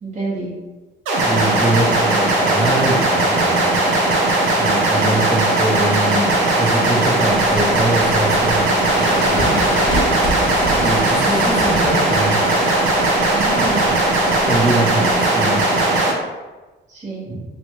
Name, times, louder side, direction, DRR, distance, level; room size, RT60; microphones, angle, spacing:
voice 1, 0.0-0.5 4.9-5.2 13.3-13.8 16.9-17.4, right 3 dB, 35° right, -9 dB, 1.2 m, -28 dB
sound 1, 1.1-16.1, right 2 dB, 85° right, 0.7 m, -18 dB
voice 2, 1.2-3.8 4.6-9.6 10.8-12.4 14.4-15.6, right 1 dB, 5° right, -2 dB, 0.7 m, -23 dB
sound 2, 7.4-15.1, equal, 90° left, 0.7 m, -28 dB
2.9 x 2.3 x 3.0 m, 1.2 s
cardioid pair, 90°, 20 cm